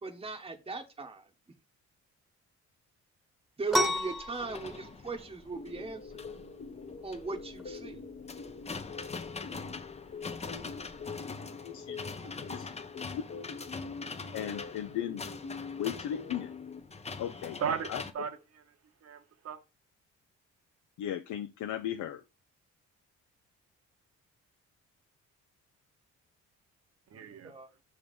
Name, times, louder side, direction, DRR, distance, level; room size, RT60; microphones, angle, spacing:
voice 1, 0.0-1.3 3.6-6.1 7.0-8.1 12.2-12.5 27.4-27.7, right 4 dB, 20° right, 1.1 m, -38 dB
sound 1, 3.7-11.1, equal, ahead, 1.2 m, -36 dB
sound 2, 4.4-18.1, left 4 dB, 20° left, 0.7 m, -44 dB
sound 3, 5.5-16.8, left 5 dB, 40° left, 1.0 m, -45 dB
voice 2, 11.6-12.0 12.5-12.7 13.1-13.2 14.3-15.2 15.8-16.5 17.2-17.6 17.9-18.0 21.0-22.2, left 10 dB, 75° left, 0.6 m, -36 dB
voice 3, 17.6-18.7 19.0-19.6 27.1-27.5, right 7 dB, 55° right, 1.2 m, -36 dB
6.1 x 3.7 x 5.2 m
cardioid pair, 90°, 30 cm